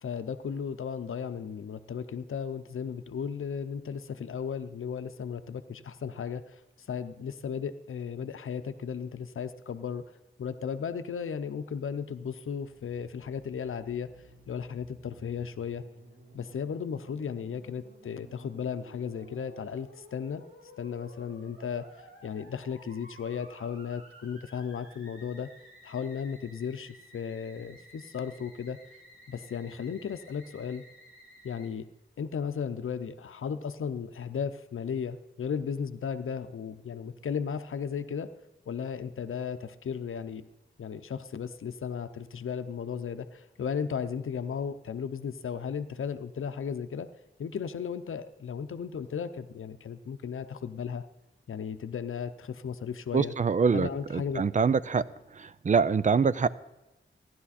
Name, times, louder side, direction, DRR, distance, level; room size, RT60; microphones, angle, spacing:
voice 1, 0.0-6.6 6.9-10.0 10.4-14.1 14.5-15.8 16.3-20.4 20.8-21.9 22.2-25.5 25.8-28.8 29.3-30.8 31.4-31.9 32.2-38.3 38.7-40.4 40.8-47.1 47.4-51.0 51.5-53.3 53.7-54.4, left 7 dB, 85° left, 11 dB, 0.7 m, -35 dB
Musical instrument, 12.6-31.7, right 1 dB, 85° right, 4.0 m, -55 dB
voice 2, 53.1-55.0 55.4-56.5, right 5 dB, 40° right, 17 dB, 0.5 m, -25 dB
15.5 x 11.0 x 4.2 m, 0.99 s
wide cardioid pair, 100°, 21 cm